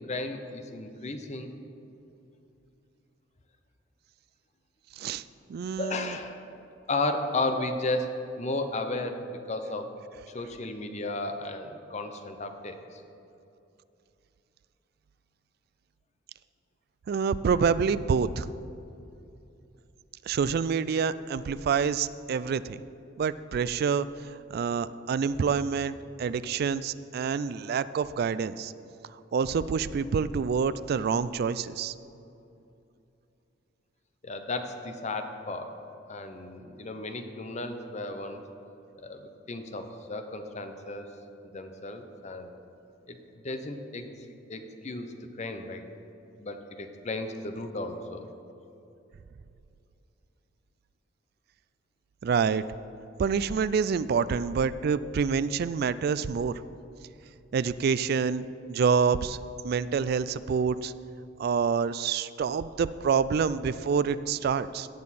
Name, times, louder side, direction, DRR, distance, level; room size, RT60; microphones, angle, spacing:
voice 1, 0.1-1.5 5.8-6.4 6.9-9.9 10.3-13.0 34.2-35.7 36.1-38.4 39.0-41.1 41.4-42.5 43.1-43.2 43.4-45.8 46.4-48.3, left 2 dB, 35° left, 7 dB, 0.7 m, -34 dB
voice 2, 5.5-6.1 17.1-18.4 20.3-22.8 23.2-24.1 24.5-28.7 29.3-31.9 52.2-52.6 53.2-56.5 57.5-59.4 59.6-60.9 61.4-64.9, right 6 dB, 50° right, 15 dB, 0.3 m, -27 dB
17.0 x 6.6 x 4.2 m, 2.8 s
head